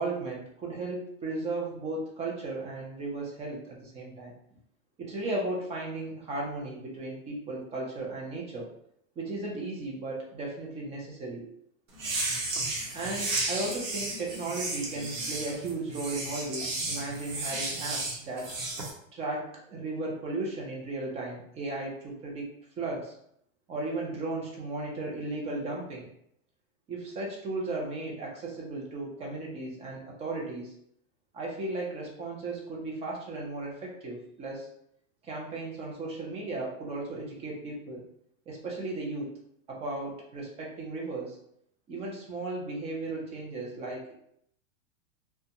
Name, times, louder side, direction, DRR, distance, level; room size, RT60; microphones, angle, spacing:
voice 1, 0.0-4.3 5.0-8.7 9.2-11.4 12.9-18.5 19.1-22.5 22.8-23.1 23.7-26.1 26.9-30.7 31.3-34.7 35.2-38.0 38.5-39.3 39.7-41.4 41.9-44.1, right 2 dB, 15° right, -2 dB, 0.4 m, -35 dB
sound 1, 11.9-18.9, right 2 dB, 85° right, 1.0 m, -33 dB
2.4 x 2.2 x 2.8 m, 0.71 s
hypercardioid pair, 135°, 39 cm